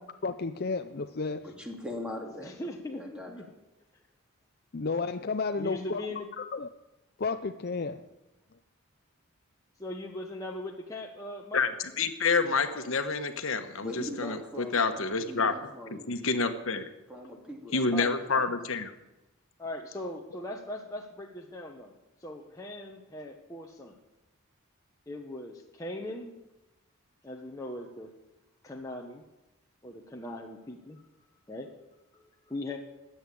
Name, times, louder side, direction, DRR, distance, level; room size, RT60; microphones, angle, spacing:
voice 1, 0.0-1.5 4.7-6.0 6.4-6.7 7.2-8.0, left 4 dB, 45° left, 9 dB, 0.5 m, -32 dB
voice 2, 1.4-3.3 13.8-14.8 15.2-16.1 17.1-18.4, left 1 dB, 5° right, 1 dB, 2.7 m, -41 dB
voice 3, 2.4-3.4 5.6-6.3 9.8-11.6 14.9-15.3 17.9-18.2 19.6-24.0 25.1-26.3 27.2-28.1 28.6-29.2 29.8-31.0 31.5-31.7 32.1-32.8, left 1 dB, 15° left, 0 dB, 1.2 m, -40 dB
voice 4, 11.5-15.5 15.9-16.9 17.7-18.9, left 4 dB, 65° left, 8 dB, 1.3 m, -28 dB
20.5 x 8.1 x 8.5 m, 0.99 s
head